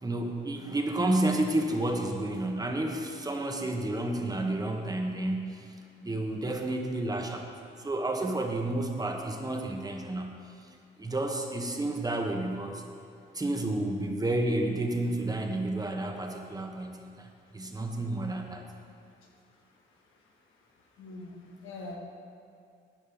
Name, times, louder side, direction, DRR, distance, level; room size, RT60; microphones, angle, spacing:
voice 1, 0.0-5.7 6.0-7.5 7.8-10.4 11.0-12.8 13.3-18.6, right 1 dB, 20° right, 2 dB, 1.3 m, -31 dB
voice 2, 21.0-22.0, left 2 dB, 85° left, 0 dB, 1.7 m, -43 dB
10.5 x 5.4 x 7.9 m, 2.4 s
cardioid pair, 90°, 20 cm